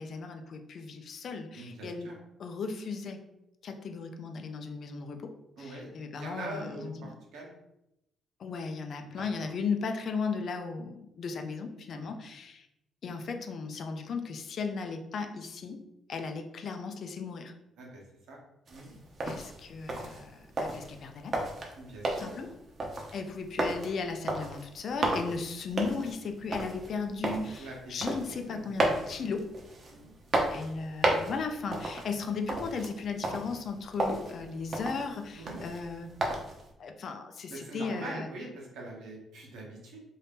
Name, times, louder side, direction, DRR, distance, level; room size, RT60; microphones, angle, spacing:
voice 1, 0.0-2.1 2.4-3.2 3.6-5.3 5.6-7.1 8.4-12.7 13.0-15.8 16.1-17.5 19.2-21.5 22.1-22.5 23.1-29.5 30.5-36.1 36.8-38.3, left 4 dB, 60° left, 5 dB, 0.5 m, -36 dB
voice 2, 1.5-2.1 5.6-7.5 9.2-9.3 11.9-12.2 17.8-18.0 18.3-18.4 18.7-18.9 21.7-22.3 27.6-27.9 28.2-28.6 29.1-29.3 29.9-30.1 35.3-35.6 37.5-40.0, right 2 dB, 85° right, -2 dB, 1.0 m, -43 dB
sound 1, 18.7-36.7, right 2 dB, 45° right, 0.7 m, -34 dB
2.7 x 2.7 x 3.5 m, 0.86 s
cardioid pair, 90°, 0 cm